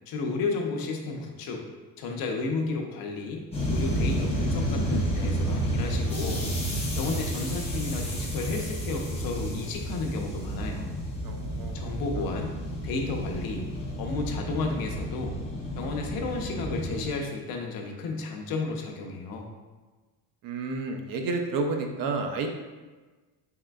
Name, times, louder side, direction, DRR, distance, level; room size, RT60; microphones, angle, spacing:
voice 1, 0.1-1.6 2.0-3.4 3.7-6.4 7.0-10.9 11.7-12.6 12.8-13.7 14.0-15.4 15.8-19.5, left 3 dB, 60° left, 1 dB, 0.7 m, -32 dB
sound 1, 3.5-17.1, equal, 15° left, 0.6 m, -31 dB
voice 2, 11.2-11.7 20.4-22.6, right 3 dB, 60° right, 4 dB, 0.5 m, -30 dB
4.0 x 3.7 x 2.2 m, 1.3 s
cardioid pair, 165°, 40 cm